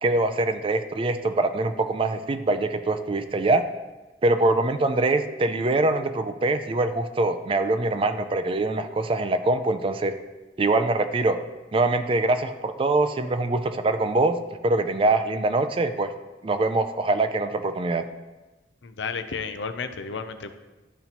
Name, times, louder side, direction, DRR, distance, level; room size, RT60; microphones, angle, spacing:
voice 1, 0.0-3.6 4.2-10.2 10.6-11.4 11.7-14.4 14.6-16.1 16.4-18.0, right 2 dB, 30° right, 9 dB, 0.4 m, -23 dB
voice 2, 18.8-20.5, left 5 dB, 90° left, 9 dB, 0.5 m, -32 dB
12.0 x 4.1 x 2.9 m, 1.1 s
head